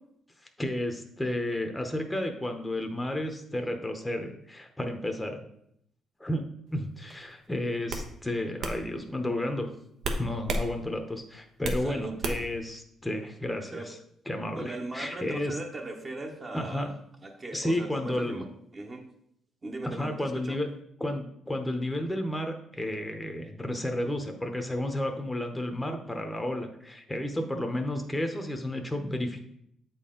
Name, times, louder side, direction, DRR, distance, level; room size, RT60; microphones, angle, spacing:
voice 1, 0.6-5.4 6.2-9.7 10.2-14.0 14.3-15.6 16.5-16.9 17.5-18.5 19.8-20.7 21.0-29.4, left 1 dB, 10° left, 4 dB, 0.8 m, -32 dB
sound 1, 7.1-7.3 7.9-8.1 8.6-8.8 10.0-10.7 11.0-11.8 12.2-12.6, right 2 dB, 70° right, 0.9 m, -31 dB
voice 2, 14.6-16.9 17.2-19.0 19.6-20.6, right 2 dB, 30° right, 1 dB, 1.0 m, -38 dB
7.8 x 4.3 x 3.8 m, 0.73 s
cardioid pair, 90°, 0 cm